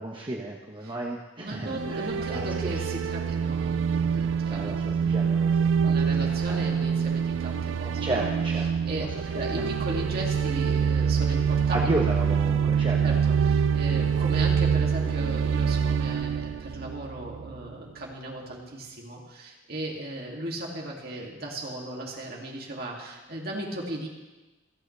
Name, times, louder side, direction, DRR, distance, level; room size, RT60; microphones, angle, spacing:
voice 1, 0.0-2.8 4.5-5.9 6.5-6.7 8.0-8.7 9.6-9.7 11.7-13.0, right 1 dB, 25° right, -2 dB, 1.1 m, -33 dB
voice 2, 1.4-4.8 5.8-8.3 8.9-9.1 9.3-11.8 13.0-24.1, right 1 dB, 55° right, -2 dB, 2.5 m, -36 dB
sound 1, 1.6-17.7, right 6 dB, 75° right, 0.3 m, -25 dB
28.0 x 9.3 x 3.4 m, 1.2 s
head